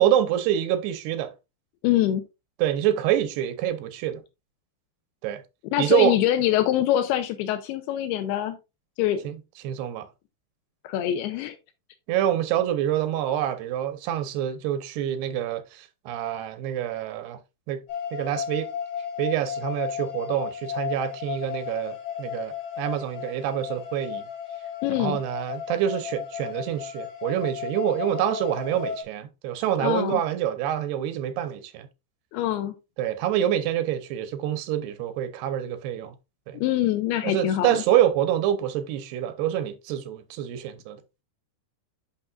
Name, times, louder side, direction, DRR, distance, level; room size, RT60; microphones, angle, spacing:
voice 1, 0.0-1.3 2.6-4.2 5.2-5.4 5.8-6.1 9.2-9.4 9.6-10.1 12.1-17.4 17.7-17.8 18.1-18.7 19.2-24.3 25.0-31.9 33.0-36.1 36.5-36.6 37.2-41.0, right 11 dB, 85° right, 2.9 m, -26 dB
voice 2, 1.8-2.2 5.7-8.6 9.0-9.3 10.8-11.6 24.8-25.2 29.8-30.2 32.3-32.7 36.5-37.8, left 12 dB, 85° left, 2.7 m, -24 dB
sound 1, 17.9-29.0, left 8 dB, 55° left, 3.4 m, -34 dB
8.6 x 6.1 x 2.4 m
omnidirectional pair, 4.6 m